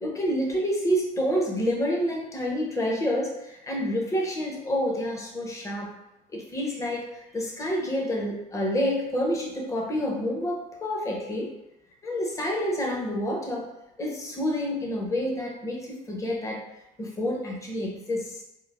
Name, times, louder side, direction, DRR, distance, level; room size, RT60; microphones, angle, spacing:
voice 1, 0.0-5.9 6.3-11.5 12.0-13.6 14.0-16.6 17.0-18.4, equal, 20° left, -1 dB, 0.6 m, -28 dB
3.0 x 2.0 x 2.3 m, 0.91 s
cardioid pair, 110°, 17 cm